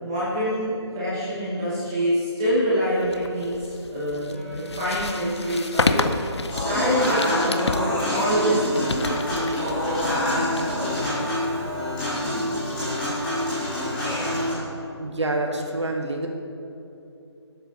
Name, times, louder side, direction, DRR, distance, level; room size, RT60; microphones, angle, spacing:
voice 1, 0.0-6.0 6.5-9.5, equal, 10° right, -9 dB, 1.1 m, -26 dB
sound 1, 3.0-11.7, left 3 dB, 65° left, 0.7 m, -30 dB
Wind instrument woodwind instrument, 4.3-9.5, equal, 30° left, 1.8 m, -42 dB
Human voice / Acoustic guitar / Piano, 6.5-14.5, left 1 dB, 5° left, 2.0 m, -26 dB
voice 2, 15.0-16.3, right 2 dB, 75° right, 2 dB, 1.5 m, -27 dB
12.0 x 8.9 x 4.2 m, 2.8 s
figure-of-eight pair, 175°, 15 cm